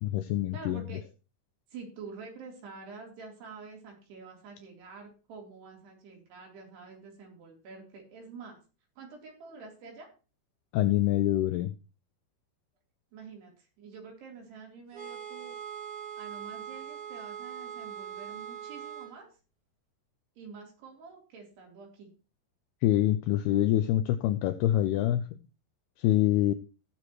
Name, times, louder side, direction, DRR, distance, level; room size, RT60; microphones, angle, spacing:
voice 1, 0.0-0.9 10.7-11.7 22.8-25.3 26.0-26.5, left 13 dB, 85° left, 11 dB, 2.3 m, -25 dB
voice 2, 0.5-1.0 1.7-8.6 9.0-10.1 13.1-15.6 16.2-19.3 20.4-22.1, right 4 dB, 65° right, 1 dB, 5.5 m, -47 dB
sound 1, 14.9-19.1, right 9 dB, 35° right, 4.1 m, -41 dB
18.5 x 7.1 x 3.1 m, 0.33 s
omnidirectional pair, 5.2 m